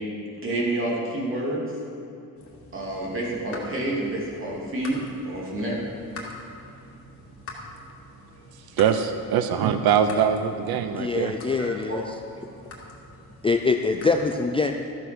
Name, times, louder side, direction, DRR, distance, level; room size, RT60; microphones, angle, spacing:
voice 1, 0.4-1.6 2.7-5.0 5.2-5.8 11.6-12.0, right 1 dB, 35° right, -4 dB, 2.8 m, -28 dB
sound 1, 2.4-14.1, left 2 dB, 40° left, 2.4 m, -45 dB
voice 2, 8.8-11.4, right 8 dB, 85° right, 9 dB, 0.7 m, -22 dB
voice 3, 11.0-12.0 13.4-14.7, left 4 dB, 15° left, 4 dB, 0.3 m, -24 dB
13.5 x 7.7 x 6.1 m, 2.8 s
cardioid pair, 160°, 36 cm